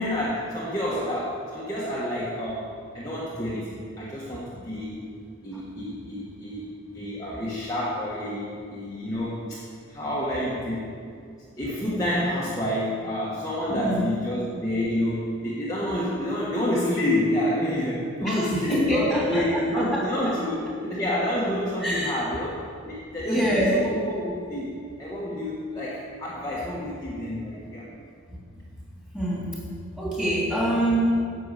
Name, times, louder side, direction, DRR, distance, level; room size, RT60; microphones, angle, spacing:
voice 1, 0.0-5.1 5.4-6.7 6.9-9.6 9.9-10.9 11.2-11.3 11.6-24.7 25.0-27.9, left 1 dB, 15° left, -7 dB, 1.5 m, -28 dB
voice 2, 18.7-19.5 19.7-20.1 21.8-22.1 23.2-24.0 28.3-28.4 29.1-29.6 30.0-31.0, right 1 dB, 5° right, -6 dB, 3.1 m, -25 dB
11.0 x 6.9 x 8.2 m, 2.3 s
head